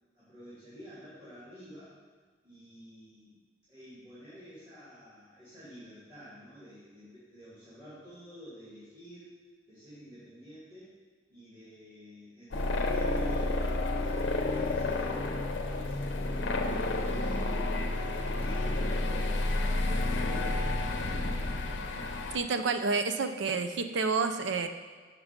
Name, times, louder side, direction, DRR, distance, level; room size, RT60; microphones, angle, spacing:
voice 1, 0.1-2.0 2.4-3.4 3.7-9.4 9.7-10.9 11.3-15.2 15.6-21.2, equal, 25° right, -12 dB, 2.3 m, -50 dB
sound 1, 12.5-22.4, left 2 dB, 75° left, 0.7 m, -30 dB
voice 2, 22.3-24.7, right 4 dB, 70° right, 8 dB, 0.5 m, -29 dB
5.9 x 5.7 x 5.1 m, 1.5 s
head